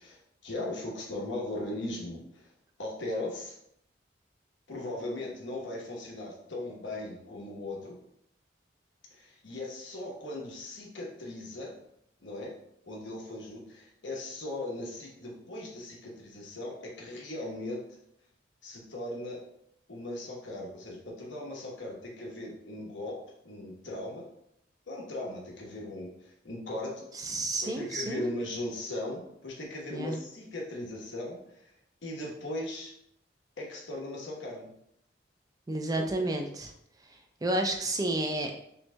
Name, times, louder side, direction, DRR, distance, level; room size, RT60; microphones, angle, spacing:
voice 1, 0.0-2.5 2.8-3.6 4.7-8.0 9.1-11.7 12.2-12.5 12.9-17.8 18.6-19.4 19.9-24.3 24.9-27.1 27.6-31.7 32.0-32.9 33.6-34.7 35.9-36.3, left 1 dB, 90° left, -2 dB, 1.0 m, -38 dB
voice 2, 27.1-28.2 29.9-30.2 35.7-36.7 37.1-38.6, right 1 dB, 20° right, 3 dB, 0.4 m, -31 dB
5.6 x 2.7 x 2.2 m, 0.73 s
head